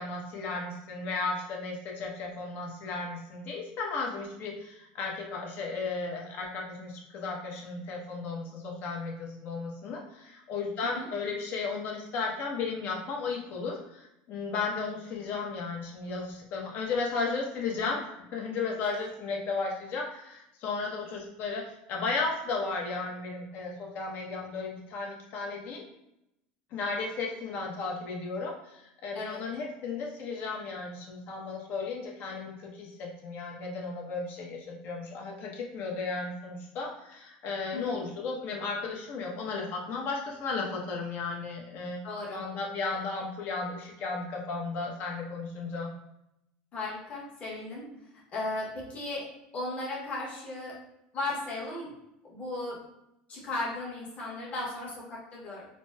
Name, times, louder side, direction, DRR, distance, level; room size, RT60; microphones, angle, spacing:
voice 1, 0.0-21.6 21.9-25.8 26.7-42.0 42.3-45.9, left 4 dB, 55° left, -1 dB, 0.8 m, -34 dB
voice 2, 37.7-38.0 42.0-42.4 46.7-47.9 48.3-50.8 51.1-51.9 52.3-52.8 53.3-55.7, left 2 dB, 35° left, -4 dB, 1.1 m, -36 dB
4.0 x 2.1 x 2.2 m, 0.84 s
supercardioid pair, 115°, 4 cm